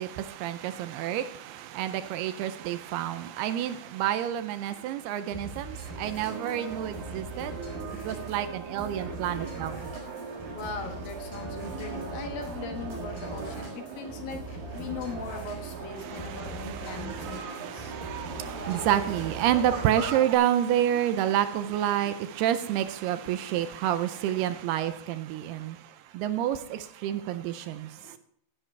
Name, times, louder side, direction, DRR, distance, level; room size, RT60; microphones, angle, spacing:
voice 1, 0.0-7.6 8.0-9.8 16.0-25.8 26.1-27.9, right 11 dB, 80° right, 2.5 m, -29 dB
sound 1, 5.3-20.1, right 2 dB, 5° left, 2.8 m, -42 dB
sound 2, 5.7-20.3, right 5 dB, 60° right, 3.6 m, -39 dB
voice 2, 10.5-14.4 14.7-17.9 20.9-21.1 22.0-22.1, left 4 dB, 65° left, 2.8 m, -39 dB
15.5 x 11.0 x 3.3 m
omnidirectional pair, 4.9 m